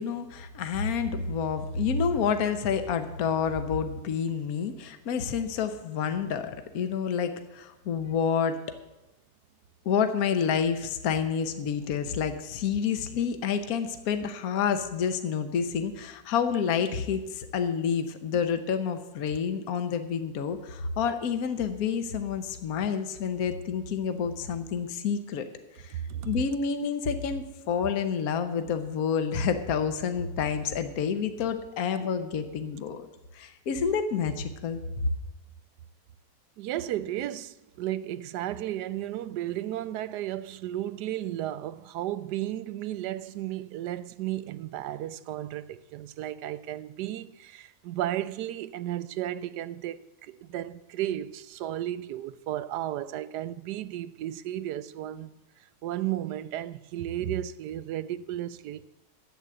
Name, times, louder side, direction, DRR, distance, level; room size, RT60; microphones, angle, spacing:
voice 1, 0.0-8.8 9.8-25.4 25.8-26.0 26.2-33.1 33.3-35.1, left 6 dB, 65° left, 1.3 m, -29 dB
voice 2, 25.9-26.4 36.6-55.3 55.8-58.8, right 12 dB, 85° right, 1.2 m, -34 dB
11.0 x 8.2 x 7.7 m
omnidirectional pair, 1.7 m